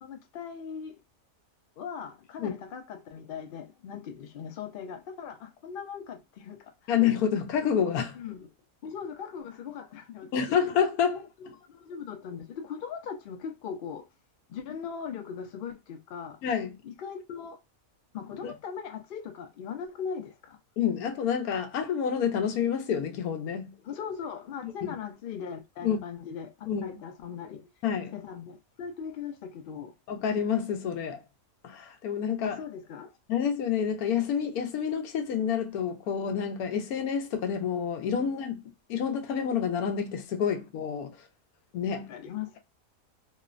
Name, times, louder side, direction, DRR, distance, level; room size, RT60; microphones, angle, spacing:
voice 1, 0.0-1.0 1.8-6.7 8.1-8.5 8.8-10.6 11.1-14.1 14.5-16.4 16.8-17.6 18.1-20.6 23.8-27.7 28.1-29.9 32.4-33.1 41.9-42.6, left 7 dB, 60° left, 0.5 m, -39 dB
voice 2, 6.9-8.2 10.3-11.2 16.4-16.8 18.4-18.5 20.8-23.8 24.6-25.0 25.8-26.0 26.7-27.0 27.8-28.2 30.1-31.2 31.6-32.6 33.3-41.2 41.7-42.1, left 8 dB, 85° left, 1.1 m, -28 dB
3.0 x 2.0 x 2.4 m
omnidirectional pair, 1.5 m